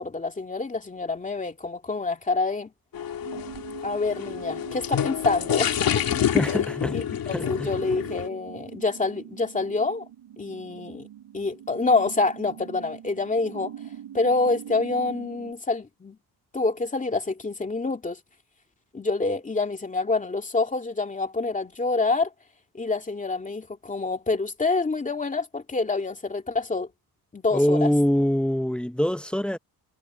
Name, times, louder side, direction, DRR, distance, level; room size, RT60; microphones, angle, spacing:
voice 1, 0.0-2.7 3.8-6.0 6.4-6.5 6.9-10.1 10.4-11.1 11.3-13.7 14.1-16.2 16.5-18.2 18.9-22.3 22.7-26.9 27.3-27.9, left 3 dB, 20° left, 2.6 m, -27 dB
sound 1, 2.9-8.3, left 9 dB, 65° left, 2.5 m, -28 dB
sound 2, 3.2-15.5, right 10 dB, 85° right, 3.4 m, -43 dB
voice 2, 6.3-7.0 7.3-7.7 27.5-29.6, equal, 5° left, 0.8 m, -24 dB
wide cardioid pair, 155°, 38 cm